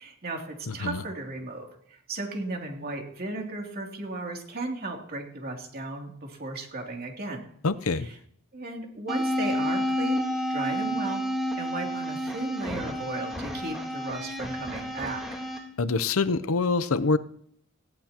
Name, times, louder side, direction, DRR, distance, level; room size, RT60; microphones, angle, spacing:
voice 1, 0.0-7.4 7.9-8.1 8.5-11.2 11.6-15.2, right 2 dB, 45° right, 1 dB, 2.9 m, -35 dB
voice 2, 0.7-1.0 7.6-8.1 15.8-17.2, left 3 dB, 90° left, 15 dB, 0.7 m, -25 dB
sound 1, 9.1-15.6, equal, ahead, 3.1 m, -30 dB
18.5 x 16.5 x 3.0 m, 0.68 s
head